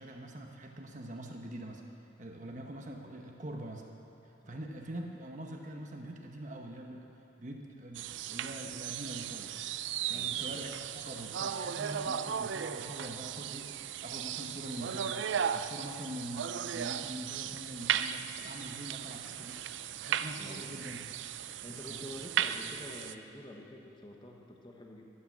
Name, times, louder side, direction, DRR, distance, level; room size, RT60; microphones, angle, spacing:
voice 1, 0.0-1.8 2.2-3.9 4.2-7.1 7.4-9.6 10.1-19.6 20.0-21.3 21.9-22.1, right 1 dB, 40° right, 2 dB, 1.0 m, -44 dB
sound 1, 7.9-23.1, right 9 dB, 75° right, 0.4 m, -36 dB
voice 2, 10.1-10.6 20.4-20.9 21.6-25.1, left 1 dB, 25° left, 1 dB, 1.1 m, -48 dB
13.0 x 9.0 x 7.6 m, 2.7 s
head